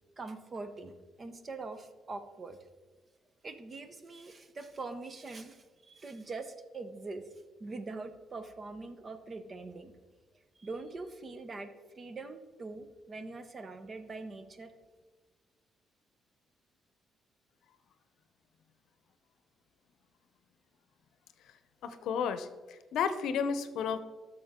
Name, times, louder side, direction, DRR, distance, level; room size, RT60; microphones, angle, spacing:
voice 1, 0.2-2.6 3.4-7.3 7.6-10.0 10.6-11.7 12.0-14.7, right 3 dB, 35° right, 9 dB, 0.9 m, -43 dB
voice 2, 21.8-24.0, left 6 dB, 80° left, 10 dB, 0.7 m, -32 dB
12.5 x 6.3 x 3.7 m, 1.3 s
cardioid pair, 90°, 0 cm